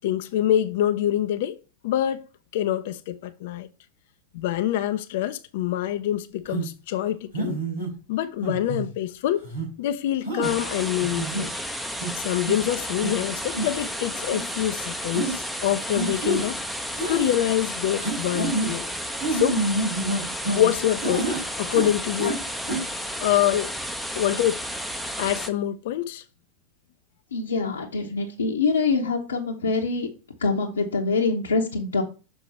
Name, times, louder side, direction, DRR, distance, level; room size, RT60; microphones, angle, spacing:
voice 1, 0.0-1.6 1.8-2.3 2.5-3.7 4.3-7.6 8.1-9.5 9.8-11.5 12.1-16.6 17.1-18.9 19.3-19.6 20.5-22.4 23.2-23.7 24.1-24.6 25.2-26.2 27.6-27.7, left 12 dB, 50° left, 0.4 m, -25 dB
sound 1, 6.5-6.7 7.3-7.9 8.4-8.9 9.4-9.7 10.3-10.5 11.0-11.5 12.0-12.1 12.5-12.7 13.0-13.1 13.5-13.9 14.2-14.4 15.1-15.3 15.9-16.5 16.9-17.3 18.0-18.7 19.2-20.7 21.0-21.4 21.7-22.4 22.6-22.8, right 2 dB, 85° right, 3.5 m, -28 dB
sound 2, 10.4-25.5, equal, ahead, 0.7 m, -32 dB
voice 2, 27.3-30.1 30.4-32.0, left 4 dB, 70° left, 0.9 m, -24 dB
6.7 x 4.5 x 4.3 m
figure-of-eight pair, 90°, 0 cm